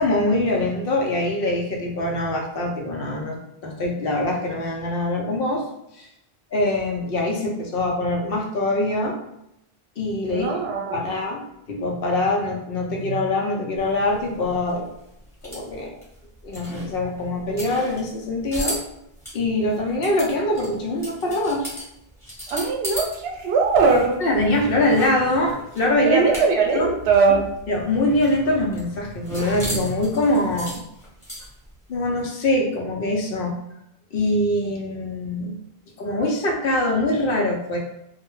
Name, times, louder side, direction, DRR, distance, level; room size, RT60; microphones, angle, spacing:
voice 1, 0.0-5.6 6.0-6.1 6.5-9.2 10.0-10.6 10.9-11.4 11.7-14.8 15.4-16.0 16.4-18.8 19.3-21.7 24.2-26.3 26.7-26.9 27.7-30.8 31.9-33.6 34.1-35.6 36.0-37.8, left 1 dB, 65° left, 0 dB, 0.8 m, -23 dB
voice 2, 10.3-11.0 22.5-24.2 26.1-27.5, right 4 dB, 80° right, 2 dB, 0.8 m, -20 dB
sound 1, 13.8-23.2 23.4-26.8 27.0-27.1 27.4-31.7, equal, 5° left, 1.0 m, -35 dB
2.2 x 2.1 x 3.0 m, 0.82 s
omnidirectional pair, 1.0 m